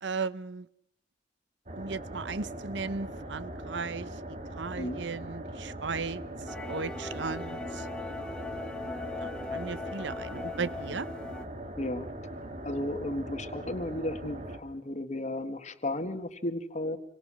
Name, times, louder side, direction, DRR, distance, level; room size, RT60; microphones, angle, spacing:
voice 1, 0.0-0.7 1.7-7.9 9.2-11.1, right 4 dB, 85° right, 17 dB, 0.9 m, -36 dB
sound 1, 1.7-14.6, right 1 dB, 40° right, 2.3 m, -41 dB
sound 2, 6.5-11.5, left 3 dB, 5° left, 1.5 m, -39 dB
voice 2, 11.8-12.1 12.6-17.0, left 1 dB, 40° left, 9 dB, 1.8 m, -34 dB
28.0 x 23.5 x 6.3 m, 0.75 s
head